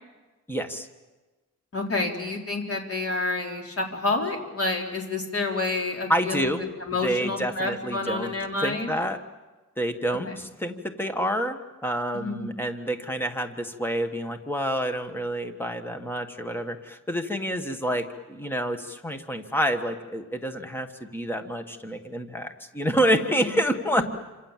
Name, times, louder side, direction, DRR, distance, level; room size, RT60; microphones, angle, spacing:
voice 1, 0.5-0.9 6.1-6.6 7.0-8.3 8.6-9.2 9.8-24.0, equal, 5° left, 7 dB, 1.5 m, -28 dB
voice 2, 1.7-6.5 6.9-8.9 10.1-10.3 12.1-12.5 24.0-24.1, left 3 dB, 45° left, 2 dB, 4.1 m, -29 dB
28.5 x 26.5 x 7.5 m, 1.2 s
wide cardioid pair, 170°, 32 cm